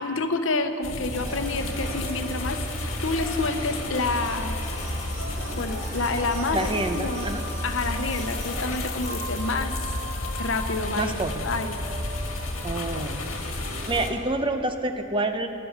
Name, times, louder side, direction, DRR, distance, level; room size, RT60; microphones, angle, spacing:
voice 1, 0.0-2.6 3.0-4.6 5.6-7.3 7.6-9.7 10.4-11.1 11.4-11.8, left 3 dB, 70° left, 7 dB, 0.9 m, -28 dB
sound 1, 0.8-14.1, left 1 dB, 85° left, 1.6 m, -32 dB
sound 2, 1.1-14.2, right 1 dB, 65° right, 2.1 m, -39 dB
voice 2, 6.5-7.4 11.0-11.5 12.6-13.6 13.8-15.5, right 2 dB, 25° right, 7 dB, 0.7 m, -28 dB
16.0 x 12.0 x 6.0 m, 3.0 s
head